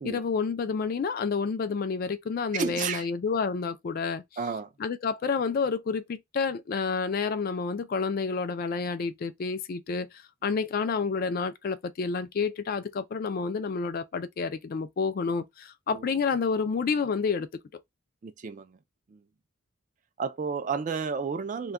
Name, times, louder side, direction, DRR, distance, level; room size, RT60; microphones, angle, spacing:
voice 1, 0.0-4.2 4.8-17.5, left 5 dB, 45° left, 0.3 m, -29 dB
voice 2, 2.5-3.1 4.4-4.7 15.9-16.2 18.2-18.8 19.1-19.2 20.2-21.7, right 5 dB, 35° right, 0.3 m, -32 dB
2.3 x 2.2 x 3.5 m
head